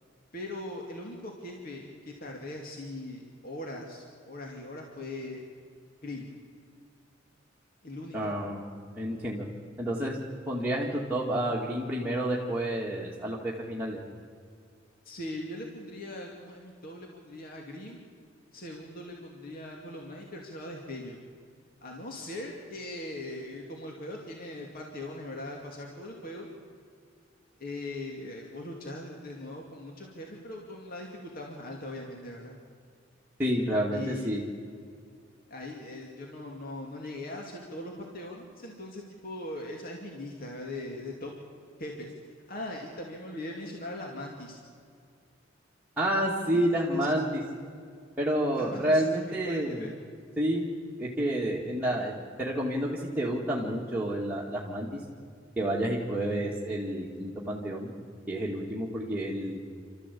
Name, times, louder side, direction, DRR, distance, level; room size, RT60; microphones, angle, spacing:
voice 1, 0.3-5.4 6.0-6.3 7.8-8.3 15.0-18.0 18.5-21.2 21.8-26.5 27.6-32.5 33.9-34.5 35.5-41.3 41.8-42.1 42.5-44.6 46.5-47.3 48.5-49.9, left 1 dB, 50° left, 0 dB, 2.5 m, -40 dB
voice 2, 8.1-8.7 9.0-9.5 9.8-10.2 10.5-14.0 33.4-34.4 46.0-47.4 48.2-49.9 50.4-50.6 51.0-55.0 55.6-57.9 58.3-59.6, right 1 dB, 10° right, -6 dB, 2.3 m, -29 dB
29.0 x 13.5 x 8.5 m, 2.2 s
head